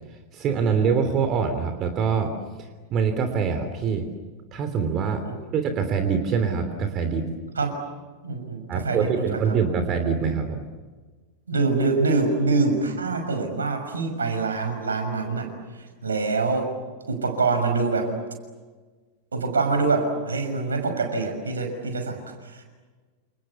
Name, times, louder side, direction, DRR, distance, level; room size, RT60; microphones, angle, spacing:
voice 1, 0.3-2.3 2.6-4.1 4.5-5.2 5.5-7.3 8.7-10.7, right 6 dB, 30° right, 8 dB, 3.1 m, -24 dB
voice 2, 8.2-9.6 11.5-16.7 17.1-18.1 19.3-22.6, right 3 dB, 75° right, 5 dB, 6.3 m, -25 dB
29.5 x 29.0 x 7.1 m, 1.4 s
figure-of-eight pair, 90°, 0 cm